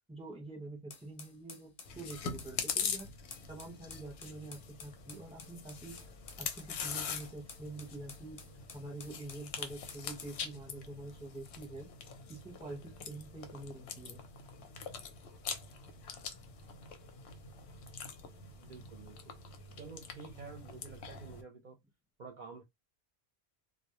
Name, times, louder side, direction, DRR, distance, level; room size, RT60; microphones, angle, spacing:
voice 1, 0.1-3.1 3.5-6.0 6.4-8.4 8.7-11.9 12.3-14.2, right 2 dB, 5° right, 0.7 m, -46 dB
sound 1, 0.9-10.4, left 5 dB, 45° left, 0.5 m, -52 dB
Chewing mastication, 1.9-21.4, left 6 dB, 90° left, 0.9 m, -43 dB
voice 2, 18.6-19.4 19.8-21.8 22.2-22.6, right 5 dB, 55° right, 0.6 m, -50 dB
2.1 x 2.1 x 2.9 m
omnidirectional pair, 1.1 m